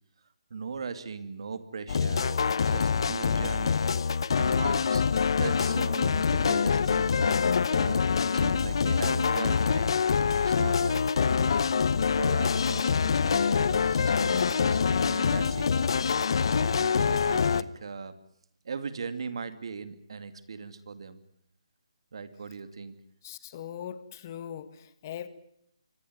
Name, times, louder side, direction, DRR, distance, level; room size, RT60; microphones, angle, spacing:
voice 1, 0.5-5.0 5.4-11.6 12.1-15.7 16.5-18.2 18.6-21.2 22.1-22.9, right 5 dB, 60° right, 11 dB, 2.4 m, -39 dB
sound 1, 1.9-17.6, left 6 dB, 55° left, 0.9 m, -25 dB
voice 2, 23.2-25.3, left 9 dB, 35° left, 13 dB, 1.7 m, -40 dB
24.5 x 18.0 x 9.5 m, 0.72 s
hypercardioid pair, 155°, 3 cm